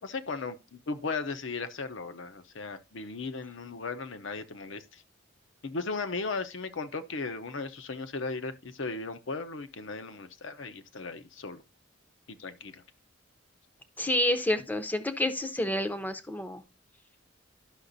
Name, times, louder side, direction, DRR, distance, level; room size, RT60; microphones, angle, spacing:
voice 1, 0.0-5.0 5.6-11.6 12.3-12.8, left 4 dB, 70° left, 0.7 m, -36 dB
voice 2, 14.0-16.6, left 1 dB, 10° left, 0.6 m, -29 dB
11.5 x 5.8 x 2.6 m
head